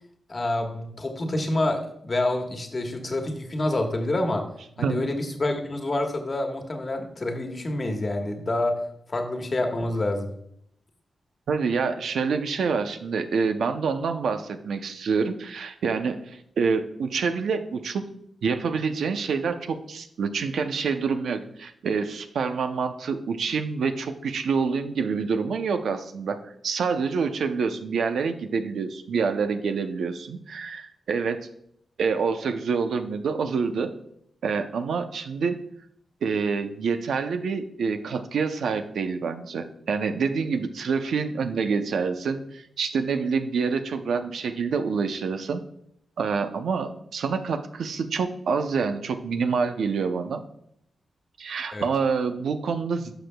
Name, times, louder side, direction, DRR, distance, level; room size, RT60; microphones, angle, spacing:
voice 1, 0.3-4.5 4.8-10.3 51.7-51.9, left 2 dB, 40° left, 3 dB, 1.3 m, -27 dB
voice 2, 11.5-18.1 18.4-31.5 32.0-33.9 34.4-35.6 36.2-45.6 46.2-50.4 51.4-53.1, right 5 dB, 80° right, 8 dB, 0.6 m, -27 dB
11.5 x 6.1 x 2.3 m, 0.71 s
cardioid pair, 65°, 0 cm